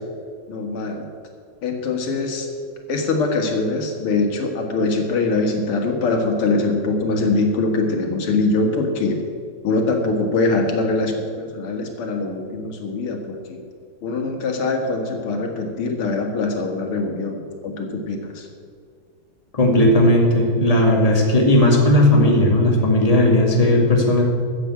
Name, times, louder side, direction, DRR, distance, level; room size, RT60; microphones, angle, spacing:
voice 1, 0.5-1.1 1.6-2.5 2.9-9.2 9.6-13.6 14.0-18.5, left 3 dB, 85° left, 3 dB, 2.5 m, -23 dB
voice 2, 19.5-24.2, left 1 dB, 15° left, -1 dB, 2.3 m, -16 dB
14.5 x 7.6 x 8.4 m, 2.2 s
omnidirectional pair, 2.4 m